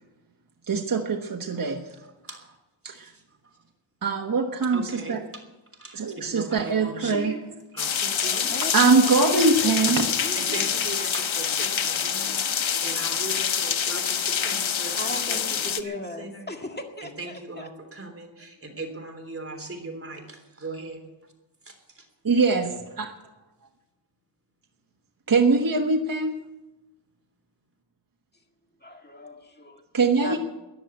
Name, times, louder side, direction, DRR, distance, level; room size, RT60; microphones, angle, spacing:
voice 1, 0.7-1.8 2.8-3.1 4.0-5.2 5.9-7.3 8.7-10.1 22.2-22.7 23.0-23.1 25.3-26.3 29.9-30.4, right 4 dB, 45° right, 4 dB, 1.3 m, -22 dB
voice 2, 2.0-2.6 2.9-3.6 4.7-5.4 5.7-7.4 7.7-8.5 10.3-15.4 15.8-16.5 17.0-21.0 21.6-22.1, right 2 dB, 30° right, 3 dB, 3.4 m, -39 dB
sound 1, 7.8-15.8, left 7 dB, 85° left, 1.0 m, -26 dB
voice 3, 8.2-10.6 12.2-13.0 14.4-17.7 28.8-29.8 30.2-30.4, left 1 dB, 20° left, 3 dB, 2.1 m, -38 dB
14.5 x 10.0 x 9.5 m, 1.0 s
wide cardioid pair, 115°, 46 cm